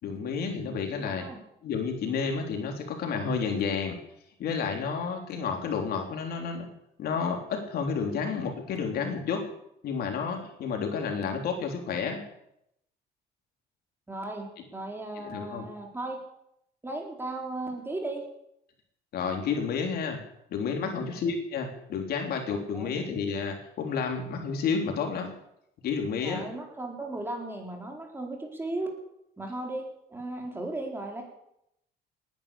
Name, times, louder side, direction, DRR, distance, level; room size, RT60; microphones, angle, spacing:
voice 1, 0.0-1.3 1.6-4.0 4.4-6.7 7.0-9.5 9.8-12.2 15.2-15.6 19.1-20.2 20.5-25.3 25.8-26.5, left 5 dB, 65° left, 3 dB, 3.6 m, -30 dB
voice 2, 1.0-1.4 14.1-16.2 16.8-18.3 20.9-21.2 22.7-22.9 26.2-29.0 29.4-31.2, right 2 dB, 15° right, 1 dB, 4.3 m, -36 dB
19.0 x 11.0 x 6.8 m, 0.78 s
cardioid pair, 110°, 17 cm